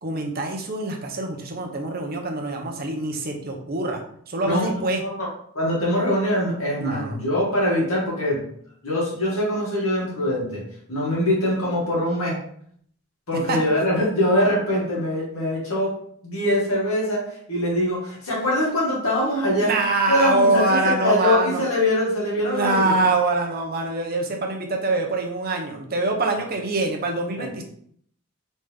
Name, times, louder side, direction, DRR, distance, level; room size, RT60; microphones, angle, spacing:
voice 1, 0.0-4.0 4.3-5.0 6.8-7.2 13.5-13.6 19.6-21.6 22.4-27.6, right 2 dB, 45° right, 2 dB, 0.8 m, -24 dB
voice 2, 4.4-4.7 5.0-5.3 5.6-8.5 8.8-12.4 13.3-16.0 16.2-19.8 20.1-23.0 27.4-27.5, left 1 dB, 85° left, -4 dB, 2.0 m, -23 dB
4.1 x 3.4 x 3.6 m, 0.64 s
head